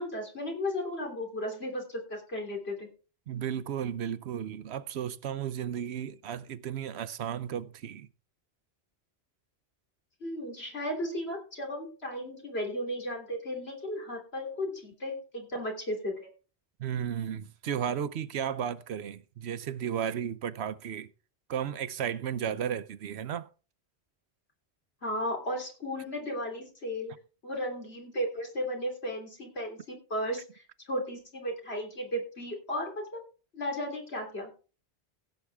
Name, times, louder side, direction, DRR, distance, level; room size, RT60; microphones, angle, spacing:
voice 1, 0.0-2.9 10.2-16.3 25.0-27.2 27.4-33.2 33.5-34.5, equal, 75° left, 3.5 m, -35 dB
voice 2, 3.3-8.1 16.8-21.1 21.5-23.5, right 9 dB, 80° right, 1.0 m, -34 dB
16.0 x 7.8 x 3.5 m
omnidirectional pair, 1.1 m